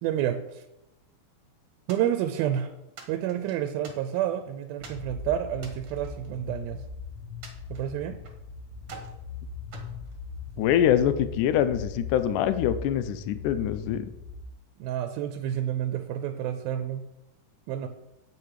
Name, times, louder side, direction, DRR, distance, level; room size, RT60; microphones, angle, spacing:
voice 1, 0.0-0.7 1.9-2.7 3.1-6.8 7.7-8.2 14.8-17.1 17.7-17.9, right 11 dB, 80° right, 9 dB, 2.5 m, -29 dB
sound 1, 1.9-2.5 3.0-4.4 4.8-5.1 5.5-6.9 7.4-8.4 8.8-9.2 9.7-10.8, right 5 dB, 50° right, 1.8 m, -48 dB
sound 2, 4.8-14.4, left 5 dB, 5° right, 2.7 m, -40 dB
voice 2, 10.6-14.0, left 10 dB, 85° left, 12 dB, 1.8 m, -24 dB
9.7 x 8.2 x 4.9 m, 0.90 s
omnidirectional pair, 4.3 m